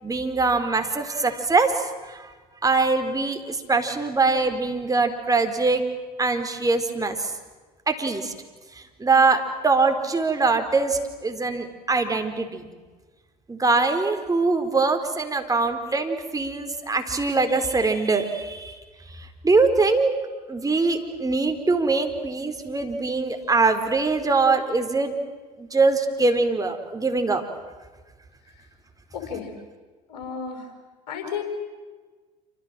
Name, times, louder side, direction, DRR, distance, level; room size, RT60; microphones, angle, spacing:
voice 1, 0.0-2.3 2.6-5.8 6.2-7.3 7.9-8.3 8.7-12.7 13.5-18.8 19.1-20.1 20.5-25.2 25.6-27.4, right 3 dB, 15° right, 6 dB, 4.5 m, -23 dB
voice 2, 29.1-29.5 30.1-30.7 31.1-31.4, left 6 dB, 70° left, 5 dB, 5.9 m, -33 dB
27.5 x 26.5 x 7.8 m, 1.4 s
hypercardioid pair, 70°, 21 cm